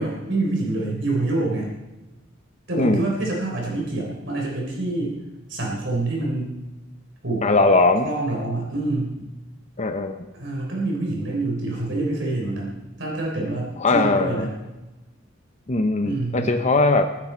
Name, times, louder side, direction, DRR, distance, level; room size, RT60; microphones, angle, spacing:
voice 1, 0.0-1.7 2.7-5.2 5.5-6.6 7.2-7.5 8.0-9.2 10.3-12.7 13.0-14.5 16.0-16.6, right 2 dB, 70° right, -2 dB, 3.7 m, -26 dB
voice 2, 7.4-8.1 9.8-10.2 13.8-14.5 15.7-17.1, left 3 dB, 35° left, 7 dB, 0.8 m, -19 dB
21.5 x 9.9 x 4.5 m, 1.1 s
head